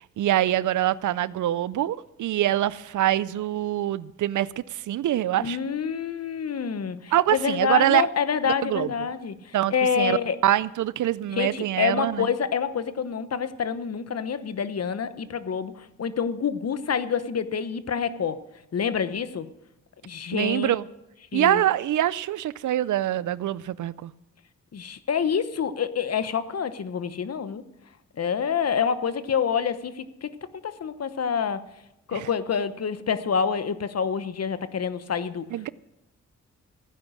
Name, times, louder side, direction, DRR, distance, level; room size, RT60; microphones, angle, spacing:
voice 1, 0.2-5.6 7.1-8.1 8.6-8.9 9.5-10.2 10.4-12.3 20.3-20.8 21.3-24.1 32.1-32.3 35.5-35.7, right 13 dB, 80° right, 0.5 m, -24 dB
voice 2, 5.4-10.4 11.3-18.4 18.7-19.5 20.0-20.8 21.3-21.6 24.7-27.6 28.2-31.6 32.1-35.5, left 7 dB, 55° left, 1.0 m, -27 dB
15.5 x 9.8 x 6.2 m
cardioid pair, 65°, 30 cm